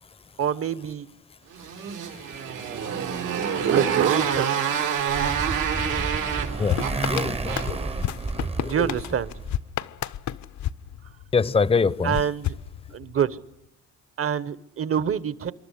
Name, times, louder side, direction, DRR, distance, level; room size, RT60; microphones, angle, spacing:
voice 1, 0.4-1.1 3.5-4.5 8.6-9.3 12.0-12.6 12.9-13.4 14.2-15.5, right 8 dB, 50° right, 16 dB, 1.2 m, -26 dB
Motorcycle, 1.5-7.9, right 8 dB, 85° right, 4.3 m, -26 dB
Motorcycle 2, 4.9-9.6, right 3 dB, 20° right, 0.9 m, -31 dB
sound 1, 6.7-11.5 12.1-13.4, left 11 dB, 70° left, 0.9 m, -32 dB
voice 2, 7.1-8.1 8.6-8.9 11.3-12.2, left 5 dB, 20° left, 19 dB, 0.7 m, -24 dB
27.5 x 12.0 x 10.0 m, 0.86 s
cardioid pair, 90°, 30 cm